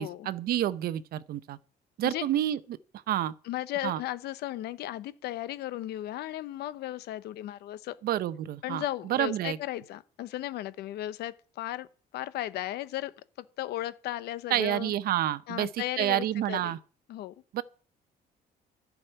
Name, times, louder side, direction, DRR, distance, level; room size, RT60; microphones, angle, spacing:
voice 1, 0.0-1.6 2.0-2.6 3.1-3.3 3.8-4.0 8.0-9.6 14.5-15.7 16.0-16.8 17.5-17.6, right 12 dB, 65° right, 0.7 m, -29 dB
voice 2, 3.4-8.0 8.6-11.9 12.1-13.1 13.6-14.9 15.5-16.8 17.1-17.3, left 14 dB, 75° left, 0.9 m, -35 dB
11.0 x 6.1 x 9.0 m
cardioid pair, 110°, 17 cm